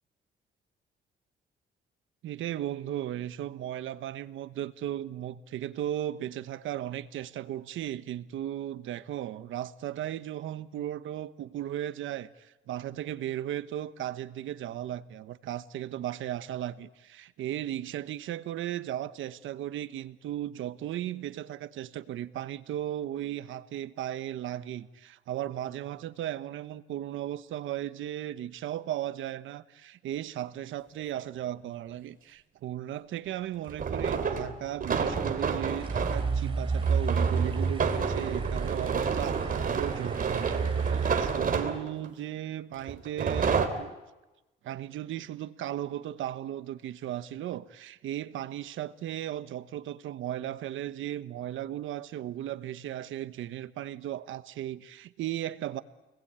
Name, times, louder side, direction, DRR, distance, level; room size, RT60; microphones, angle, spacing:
voice 1, 2.2-43.9 44.6-55.8, right 12 dB, 80° right, 1.2 m, -36 dB
sound 1, 31.0-31.1 33.7-36.3 36.8-42.1 42.9-43.7, right 6 dB, 45° right, 3.3 m, -30 dB
sound 2, 35.8-41.3, right 5 dB, 25° right, 3.4 m, -31 dB
30.0 x 20.5 x 9.0 m
cardioid pair, 90°, 20 cm